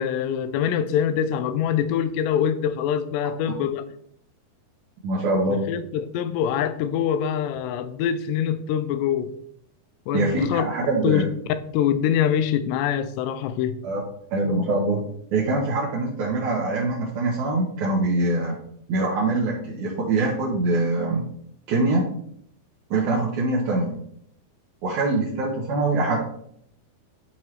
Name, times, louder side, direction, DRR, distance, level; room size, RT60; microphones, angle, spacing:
voice 1, 0.0-3.9 5.7-9.3 10.1-10.6 11.0-11.2 11.7-13.8, left 9 dB, 90° left, 2.7 m, -24 dB
voice 2, 5.0-5.7 10.1-11.3 13.8-14.0 14.3-15.0 15.3-18.6 18.9-21.3 21.7-22.1 22.9-23.9 24.8-26.2, right 2 dB, 70° right, 1.9 m, -23 dB
11.5 x 4.5 x 3.2 m
omnidirectional pair, 4.8 m